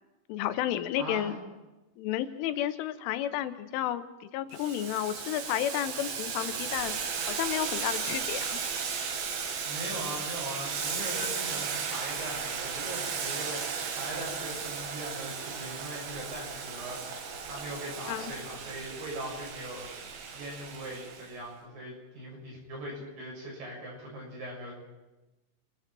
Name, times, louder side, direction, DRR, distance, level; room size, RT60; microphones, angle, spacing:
voice 1, 0.3-1.3 2.0-6.9 7.3-8.6 18.1-18.3, left 12 dB, 90° left, 11 dB, 3.4 m, -32 dB
voice 2, 1.0-1.3 9.6-19.9 20.3-24.7, right 1 dB, 45° right, -2 dB, 8.2 m, -40 dB
Boiling, 4.5-21.3, right 6 dB, 70° right, 4.1 m, -35 dB
30.0 x 22.0 x 4.6 m, 1.1 s
omnidirectional pair, 5.5 m